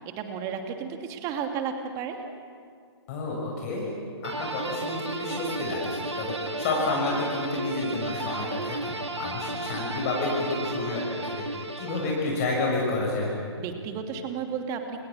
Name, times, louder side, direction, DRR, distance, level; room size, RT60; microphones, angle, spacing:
voice 1, 0.0-2.2 13.6-15.0, right 7 dB, 20° right, 5 dB, 2.7 m, -33 dB
voice 2, 3.1-3.9 4.2-11.5 11.8-13.3, left 2 dB, 35° left, -2 dB, 6.7 m, -30 dB
sound 1, 4.2-12.6, right 2 dB, 80° right, 2.2 m, -34 dB
30.0 x 28.5 x 6.5 m, 2.2 s
figure-of-eight pair, 130°, 14 cm